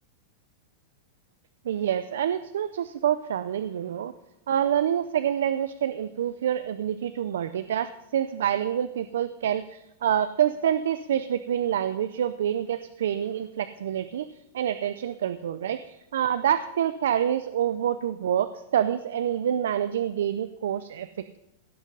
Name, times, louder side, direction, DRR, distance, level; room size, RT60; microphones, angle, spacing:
voice 1, 1.6-4.1 4.5-14.3 14.5-21.4, right 9 dB, 90° right, 12 dB, 0.5 m, -27 dB
16.5 x 6.4 x 5.5 m, 0.88 s
supercardioid pair, 175°, 0 cm